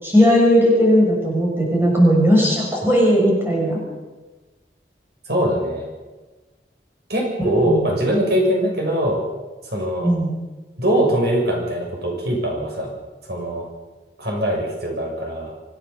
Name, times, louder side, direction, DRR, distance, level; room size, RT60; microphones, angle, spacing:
voice 1, 0.0-3.8 7.5-7.8 10.0-10.3, equal, 15° right, -3 dB, 6.7 m, -17 dB
voice 2, 5.3-5.9 7.1-9.2 9.6-10.1 10.8-12.9 13.2-13.7 14.2-15.5, equal, 65° right, 0 dB, 6.7 m, -22 dB
26.0 x 17.0 x 7.1 m, 1.2 s
head